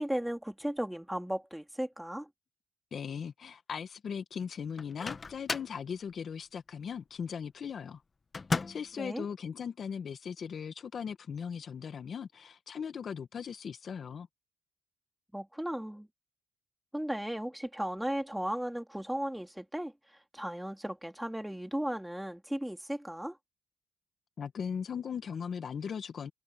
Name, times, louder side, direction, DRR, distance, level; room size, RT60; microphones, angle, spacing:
voice 1, 0.0-2.3 9.0-9.3 15.3-16.1 16.9-19.9 20.3-23.4, equal, 5° right, 2.5 m, -35 dB
voice 2, 2.9-8.0 8.7-14.3 24.4-26.3, left 7 dB, 50° left, 1.7 m, -38 dB
Microwave oven, 4.8-5.8 8.3-9.0, left 4 dB, 30° left, 1.4 m, -34 dB
cardioid pair, 90°, 0 cm